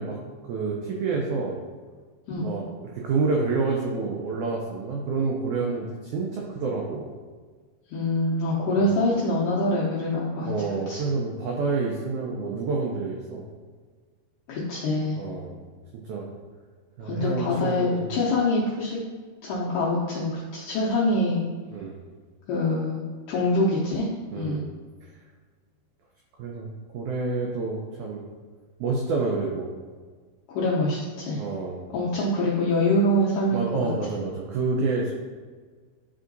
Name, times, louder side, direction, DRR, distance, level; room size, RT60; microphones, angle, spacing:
voice 1, 0.0-1.6 2.4-7.2 8.8-8.9 10.5-13.5 15.2-15.6 15.9-16.3 17.0-18.1 21.7-22.0 24.3-24.7 26.4-28.2 28.8-29.7 31.4-31.9 33.5-35.1, right 4 dB, 85° right, -1 dB, 1.7 m, -28 dB
voice 2, 7.9-10.5 10.9-11.0 14.5-15.2 17.0-19.0 19.4-21.4 22.5-23.0 23.3-24.1 24.4-24.6 30.5-31.4 31.9-33.9, left 1 dB, 75° left, -6 dB, 2.1 m, -25 dB
10.5 x 3.7 x 2.6 m, 1.5 s
omnidirectional pair, 4.3 m